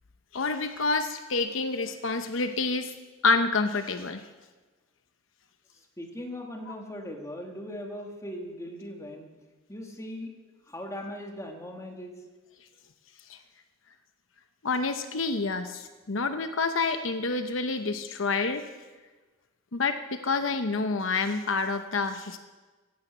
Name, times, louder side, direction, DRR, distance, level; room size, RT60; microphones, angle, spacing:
voice 1, 0.3-2.9 3.2-4.3 6.7-6.8 13.3-13.4 14.6-18.6 19.7-22.4, left 3 dB, 75° left, 8 dB, 0.9 m, -28 dB
voice 2, 6.0-9.3 9.7-10.3 10.7-12.1, left 1 dB, 15° left, 2 dB, 2.1 m, -39 dB
15.5 x 11.5 x 8.1 m, 1.3 s
head